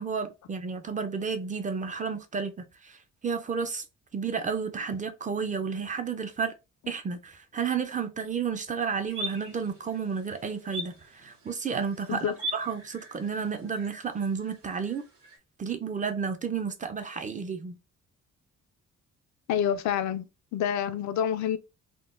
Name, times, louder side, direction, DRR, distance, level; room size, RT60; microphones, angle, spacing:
voice 1, 0.0-2.5 2.8-3.0 3.2-3.8 4.1-6.5 6.9-15.0 15.6-17.8, right 6 dB, 25° right, 0.4 m, -31 dB
sound 1, 9.1-15.4, equal, 90° right, 1.4 m, -41 dB
voice 2, 19.5-20.2 20.5-21.6, left 9 dB, 70° left, 0.5 m, -27 dB
3.7 x 2.1 x 2.5 m
cardioid pair, 90°, 30 cm